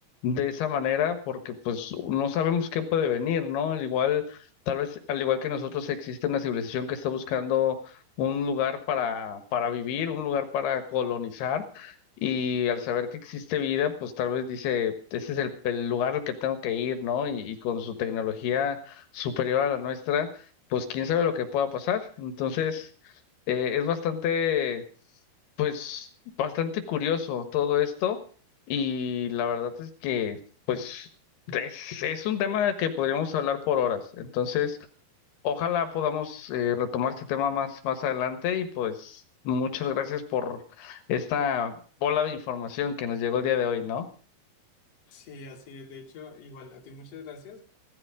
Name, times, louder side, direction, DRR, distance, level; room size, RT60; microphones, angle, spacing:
voice 1, 0.2-12.0 12.2-20.3 20.7-22.9 23.5-24.8 25.6-26.1 26.4-28.2 28.7-30.4 30.7-31.1 31.5-34.8 35.4-44.1, left 8 dB, 85° left, 8 dB, 3.4 m, -28 dB
voice 2, 45.1-47.6, left 4 dB, 45° left, 1 dB, 3.1 m, -44 dB
16.0 x 13.0 x 4.9 m, 0.41 s
omnidirectional pair, 4.5 m